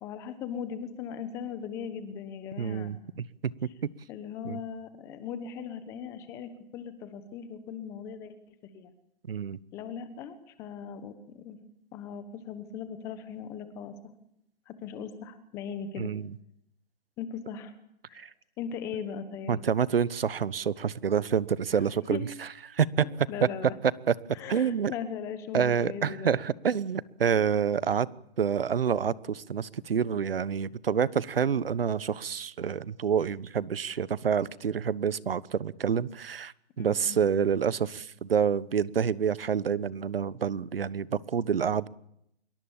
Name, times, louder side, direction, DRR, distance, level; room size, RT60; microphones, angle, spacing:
voice 1, 0.0-2.9 4.1-8.9 9.7-11.6 11.9-13.9 14.7-16.1 17.2-17.7 18.1-19.6 21.7-21.8 22.1-22.2 23.0-23.7 24.3-26.4 36.8-37.2, left 7 dB, 10° left, 11 dB, 1.1 m, -39 dB
voice 2, 2.6-3.5 4.4-4.6 9.3-9.6 16.0-16.3 18.1-18.3 19.5-23.0 24.1-24.2 24.5-24.9 25.5-28.1 28.4-41.9, right 7 dB, 65° right, 19 dB, 1.2 m, -28 dB
25.5 x 22.5 x 7.3 m, 0.77 s
hypercardioid pair, 170°, 32 cm